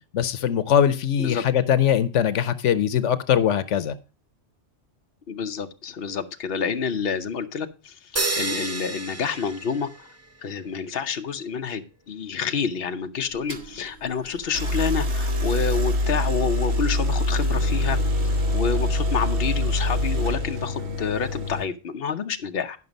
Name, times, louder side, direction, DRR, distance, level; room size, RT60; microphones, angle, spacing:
voice 1, 0.1-3.9, left 9 dB, 90° left, 1.1 m, -21 dB
voice 2, 5.3-10.1 10.4-18.0 18.2-22.8, left 6 dB, 55° left, 1.0 m, -28 dB
sound 1, 8.2-10.3, right 3 dB, 20° right, 0.4 m, -30 dB
sound 2, 13.5-13.7 14.5-21.7, left 1 dB, 70° right, 1.6 m, -24 dB
11.0 x 6.0 x 5.2 m
omnidirectional pair, 1.2 m